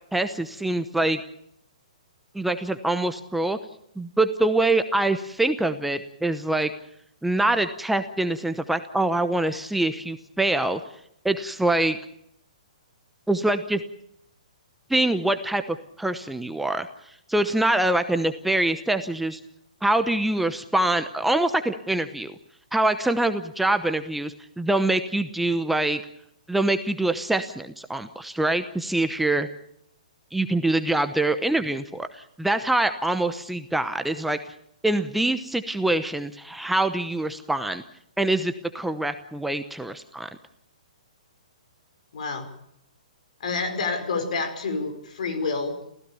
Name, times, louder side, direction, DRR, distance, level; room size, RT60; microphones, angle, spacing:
voice 1, 0.1-1.2 2.3-3.6 4.0-6.7 7.2-10.8 11.2-12.0 13.3-13.8 14.9-16.9 17.3-19.4 19.8-22.3 22.7-26.0 26.5-29.5 30.3-34.5 34.8-37.8 38.2-40.3, right 2 dB, 5° right, 8 dB, 0.9 m, -24 dB
voice 2, 42.1-42.5 43.4-45.8, left 4 dB, 65° left, 8 dB, 5.3 m, -28 dB
28.5 x 16.0 x 7.1 m, 0.74 s
hypercardioid pair, 140°, 4 cm